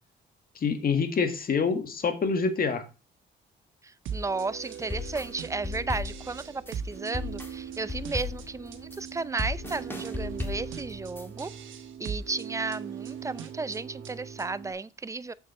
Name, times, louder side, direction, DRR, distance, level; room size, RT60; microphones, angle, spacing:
voice 1, 0.6-2.8, left 5 dB, 50° left, 1.8 m, -26 dB
voice 2, 3.8-11.5 12.0-15.3, right 3 dB, 15° right, 0.5 m, -34 dB
sound 1, 4.1-14.7, right 7 dB, 75° right, 1.3 m, -40 dB
sound 2, 4.6-11.5, left 3 dB, 10° left, 1.9 m, -37 dB
7.3 x 6.6 x 4.3 m
cardioid pair, 90°, 20 cm